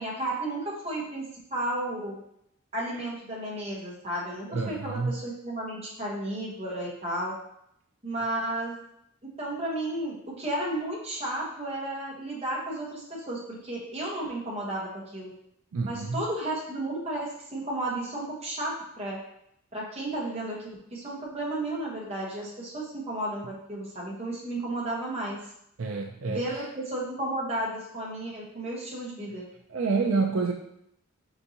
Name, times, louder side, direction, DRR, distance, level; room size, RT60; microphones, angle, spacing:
voice 1, 0.0-2.2 2.7-7.3 8.0-8.8 9.4-15.3 15.8-19.2 19.7-23.4 23.7-25.4 26.3-29.4, right 1 dB, 30° right, -4 dB, 1.2 m, -33 dB
voice 2, 4.5-5.1 15.7-16.1 25.8-26.4 29.7-30.5, right 4 dB, 75° right, 2 dB, 0.4 m, -28 dB
4.4 x 4.0 x 2.8 m, 0.75 s
head